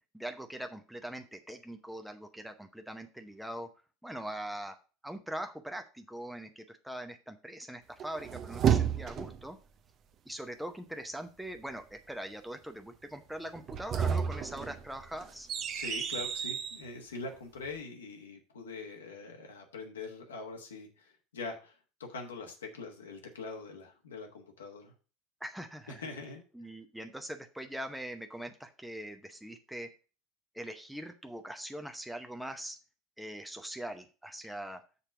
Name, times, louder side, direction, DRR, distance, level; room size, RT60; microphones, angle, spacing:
voice 1, 0.1-3.7 4.0-4.8 5.0-9.6 10.3-15.5 25.4-26.0 26.5-29.9 30.5-32.8 33.2-34.8, right 1 dB, ahead, 6 dB, 0.7 m, -42 dB
sound 1, 8.0-9.5 13.6-16.8, right 8 dB, 40° right, 0.6 m, -31 dB
voice 2, 15.7-24.9 25.9-26.7, left 3 dB, 75° left, 3 dB, 1.3 m, -43 dB
6.8 x 4.4 x 5.8 m, 0.35 s
figure-of-eight pair, 75°, 0 cm